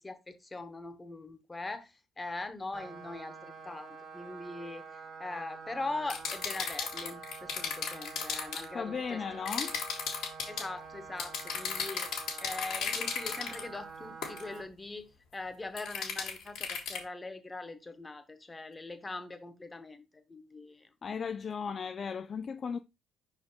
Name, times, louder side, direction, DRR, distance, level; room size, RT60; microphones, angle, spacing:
voice 1, 0.0-4.8 5.2-9.2 10.4-12.1 12.4-20.9, left 2 dB, 20° left, 1.2 m, -41 dB
sound 1, 2.7-14.6, right 5 dB, 55° right, 1.4 m, -47 dB
sound 2, 6.1-8.6 9.5-10.7 11.2-13.6 14.2-14.4 15.8-17.0, left 6 dB, 75° left, 2.0 m, -35 dB
voice 2, 8.7-9.8 21.0-22.8, left 6 dB, 45° left, 0.4 m, -36 dB
5.3 x 4.5 x 4.0 m
supercardioid pair, 70°, 0 cm